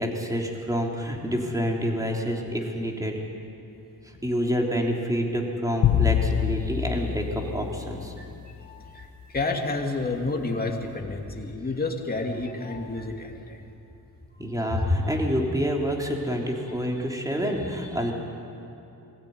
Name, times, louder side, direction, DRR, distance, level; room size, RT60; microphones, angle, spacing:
voice 1, 0.0-3.2 4.2-8.1 14.4-18.1, equal, 10° right, 0 dB, 3.4 m, -27 dB
sound 1, 5.8-8.3, left 9 dB, 70° left, 1.1 m, -25 dB
voice 2, 8.6-13.6 14.3-14.4 14.7-14.8, left 3 dB, 25° left, 1 dB, 2.7 m, -30 dB
23.5 x 15.5 x 9.6 m, 2.8 s
cardioid pair, 95°, 37 cm